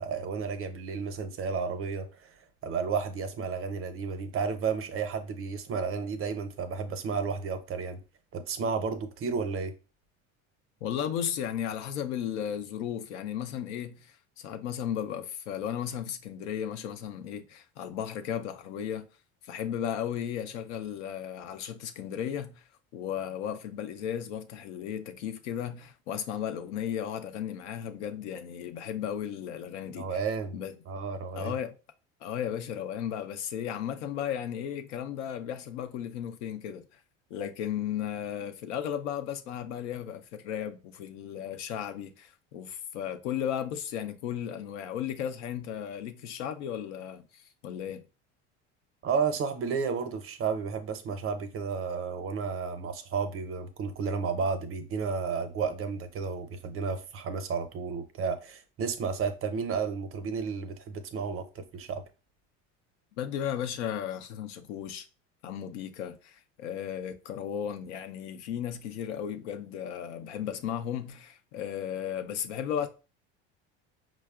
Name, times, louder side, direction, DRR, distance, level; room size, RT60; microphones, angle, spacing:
voice 1, 0.0-2.3 2.6-8.0 8.3-9.7 29.9-30.5 30.9-31.5 49.0-62.0, right 5 dB, 40° right, 0.6 m, -32 dB
voice 2, 10.8-19.1 19.4-22.6 22.9-30.2 30.5-30.7 31.3-31.8 32.2-37.0 37.3-48.0 63.2-65.1 65.4-72.9, left 9 dB, 85° left, 0.5 m, -35 dB
4.6 x 2.0 x 2.3 m
supercardioid pair, 95°, 34 cm